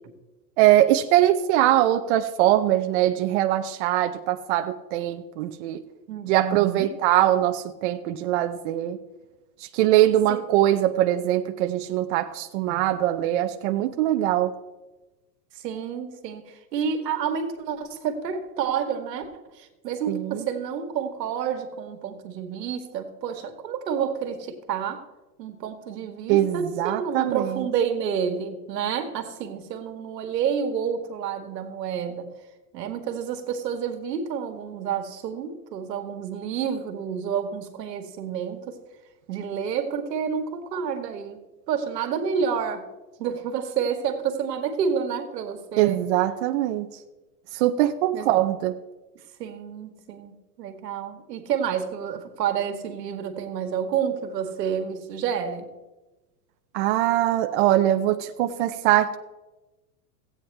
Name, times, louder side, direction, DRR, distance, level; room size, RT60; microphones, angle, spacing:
voice 1, 0.6-5.8 6.3-9.0 9.7-14.5 20.1-20.4 26.3-27.5 45.8-46.9 47.5-48.8 56.7-59.2, right 13 dB, 45° right, 7 dB, 0.6 m, -22 dB
voice 2, 6.1-6.9 10.3-10.4 15.6-19.3 19.6-25.0 25.4-32.3 32.7-38.8 39.3-41.4 41.7-42.8 43.2-46.0 48.1-48.3 49.4-50.3 50.6-55.7, right 7 dB, 85° right, 5 dB, 1.6 m, -29 dB
15.0 x 8.7 x 3.3 m, 1.1 s
supercardioid pair, 140°, 48 cm